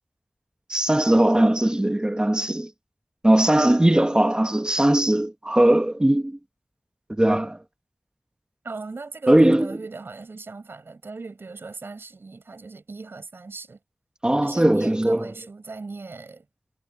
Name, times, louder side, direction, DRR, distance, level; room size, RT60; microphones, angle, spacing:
voice 1, 0.7-2.7 3.2-6.4 7.2-7.6 9.3-9.8 14.2-15.3, right 1 dB, 20° right, 1.4 m, -19 dB
voice 2, 8.6-13.8 14.4-16.4, right 3 dB, 85° right, 4.8 m, -38 dB
wide cardioid pair, 55°, 4 cm